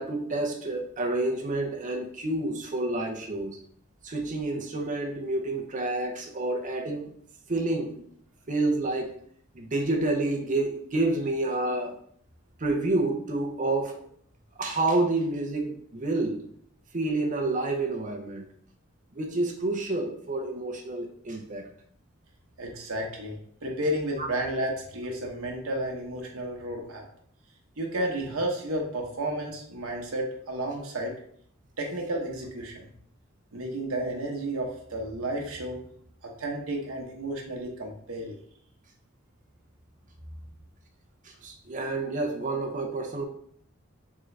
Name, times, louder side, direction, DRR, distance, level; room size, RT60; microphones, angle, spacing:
voice 1, 0.0-3.6 4.0-7.1 7.5-8.0 8.5-9.2 9.5-12.0 12.6-14.0 14.6-16.4 16.9-18.5 19.1-21.7 24.2-24.3 41.2-43.2, right 2 dB, 40° right, 3 dB, 0.7 m, -29 dB
voice 2, 22.6-27.0 27.8-31.1 31.8-32.9 33.5-35.8 36.2-38.3, right 1 dB, 85° right, 0 dB, 0.9 m, -32 dB
3.8 x 3.7 x 3.2 m, 0.65 s
head